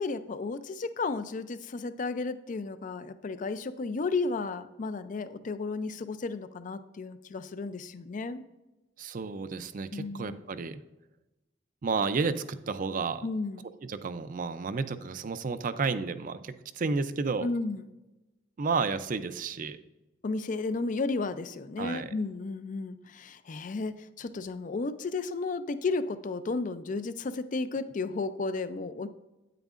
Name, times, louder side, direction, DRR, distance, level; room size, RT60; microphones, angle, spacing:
voice 1, 0.0-8.4 9.9-10.4 13.2-13.7 17.4-17.9 20.2-29.1, left 3 dB, 45° left, 12 dB, 0.4 m, -33 dB
voice 2, 9.0-10.8 11.8-13.2 13.8-17.5 18.6-19.8 21.8-22.1, right 4 dB, 45° right, 12 dB, 0.4 m, -31 dB
9.0 x 8.9 x 2.5 m, 1.0 s
head